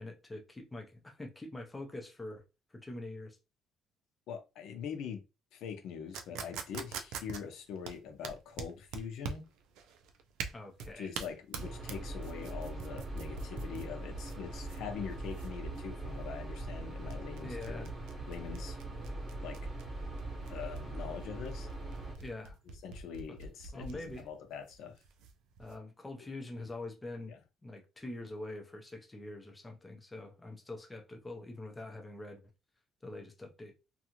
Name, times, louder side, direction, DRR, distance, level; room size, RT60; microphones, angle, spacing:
voice 1, 0.0-2.4 2.7-3.4 10.5-11.1 17.4-18.0 22.2-22.6 23.3-23.4 23.7-24.3 25.6-27.4 27.6-32.4 33.0-33.8, left 2 dB, 10° left, 0.5 m, -44 dB
voice 2, 4.3-5.2 5.5-9.4 10.9-17.9 18.3-18.8 19.4-19.6 20.5-21.7 22.8-25.0 27.3-27.4, left 7 dB, 60° left, 0.7 m, -43 dB
sound 1, 6.1-25.7, right 5 dB, 90° right, 0.4 m, -45 dB
sound 2, 11.6-22.2, right 2 dB, 25° right, 0.9 m, -41 dB
2.6 x 2.4 x 2.9 m
cardioid pair, 180°, 0 cm